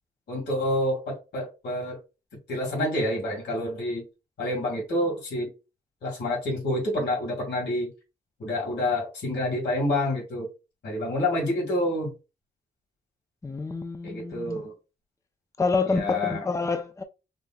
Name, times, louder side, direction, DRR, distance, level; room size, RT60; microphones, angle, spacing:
voice 1, 0.3-2.0 2.5-4.0 4.4-5.5 6.0-7.9 8.4-10.5 10.8-12.1 14.0-14.7 15.9-16.4, left 1 dB, 90° left, 2.1 m, -28 dB
voice 2, 13.4-14.6 15.6-17.0, left 4 dB, 15° left, 0.5 m, -27 dB
5.1 x 2.7 x 2.3 m
cardioid pair, 90°, 18 cm